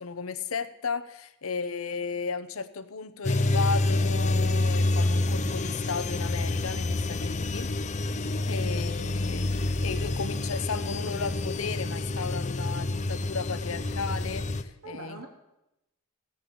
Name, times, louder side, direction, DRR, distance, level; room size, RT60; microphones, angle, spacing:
voice 1, 0.0-7.7 8.5-15.2, left 5 dB, 80° left, 12 dB, 0.9 m, -35 dB
sound 1, 3.2-14.6, left 2 dB, 35° left, 0.6 m, -28 dB
voice 2, 14.8-15.3, right 2 dB, 80° right, 0 dB, 3.4 m, -44 dB
17.0 x 5.7 x 8.5 m, 0.91 s
head